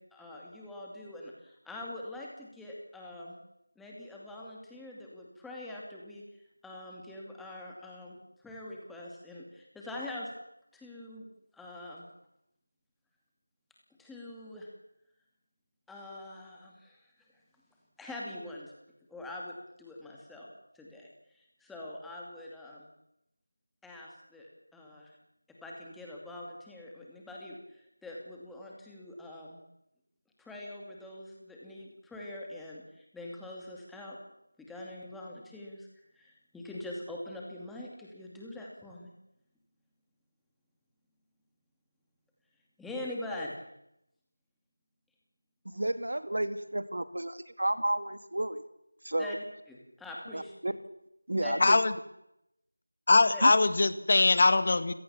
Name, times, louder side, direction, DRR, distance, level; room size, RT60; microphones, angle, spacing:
voice 1, 0.0-3.4 3.8-6.2 6.6-10.3 10.7-11.3 11.5-12.1 14.0-14.7 15.9-17.1 18.0-18.7 19.1-20.5 20.7-22.9 23.8-25.1 25.6-29.6 30.4-34.2 34.6-35.9 36.1-39.1 42.8-43.6 49.2-49.4 49.7-50.5 51.4-51.5 53.3-53.4, left 1 dB, ahead, -3 dB, 2.6 m, -44 dB
voice 2, 45.6-48.6 49.0-49.4 50.3-50.7 51.3-51.8 53.4-53.5, right 1 dB, 70° right, 11 dB, 2.4 m, -31 dB
voice 3, 51.6-51.9 53.1-54.9, left 3 dB, 35° left, 13 dB, 1.5 m, -22 dB
29.5 x 17.0 x 7.3 m, 0.84 s
figure-of-eight pair, 170°, 0 cm